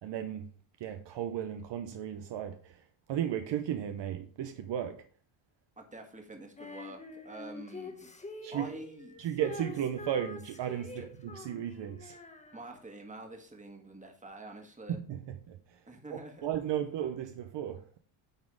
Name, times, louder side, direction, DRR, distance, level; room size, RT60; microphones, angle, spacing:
voice 1, 0.0-0.5 0.8-2.8 3.1-5.0 8.4-8.8 9.2-12.2 14.9-15.8 16.1-17.8, right 10 dB, 60° right, 0.9 m, -35 dB
voice 2, 5.8-8.1 8.5-9.2 10.9-11.1 12.5-15.0 15.9-16.5, right 2 dB, 15° right, 1.7 m, -47 dB
Female singing, 6.6-13.1, left 3 dB, 15° left, 1.0 m, -46 dB
9.3 x 4.0 x 4.9 m
cardioid pair, 110°, 50 cm